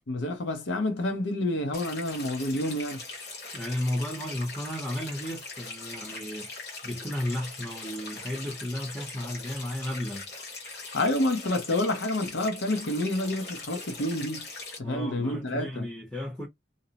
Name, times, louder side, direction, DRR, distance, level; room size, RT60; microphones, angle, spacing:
voice 1, 0.1-3.0 10.9-14.5 14.8-15.9, left 1 dB, 80° left, 0.7 m, -28 dB
sound 1, 1.7-14.8, left 3 dB, 60° left, 1.1 m, -41 dB
voice 2, 3.5-6.5 6.8-10.3 14.8-16.5, left 1 dB, 5° left, 0.6 m, -33 dB
2.6 x 2.0 x 2.8 m
head